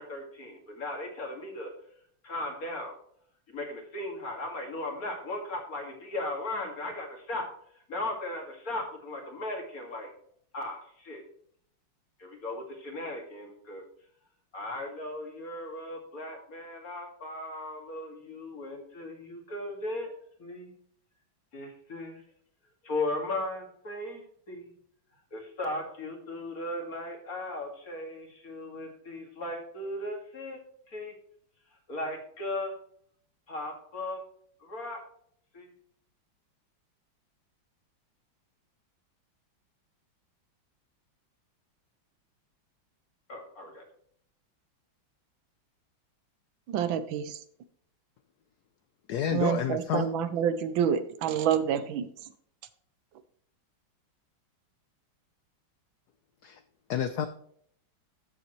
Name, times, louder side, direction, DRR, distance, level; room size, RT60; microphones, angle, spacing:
voice 1, 0.0-1.7 2.2-2.9 3.5-7.5 7.7-10.1 10.5-11.2 12.2-13.8 14.5-20.1 20.4-20.7 21.5-22.2 22.8-24.7 25.3-30.6 30.9-31.2 31.9-32.7 33.5-34.2 34.6-35.0 35.5-35.7 43.3-43.8, left 2 dB, 45° left, 2.4 m, -37 dB
voice 2, 46.7-47.4 49.3-52.1, right 8 dB, 75° right, 1.4 m, -28 dB
voice 3, 49.1-50.1 56.4-56.6 56.9-57.3, left 8 dB, 70° left, 1.0 m, -29 dB
13.0 x 6.9 x 3.1 m
omnidirectional pair, 2.2 m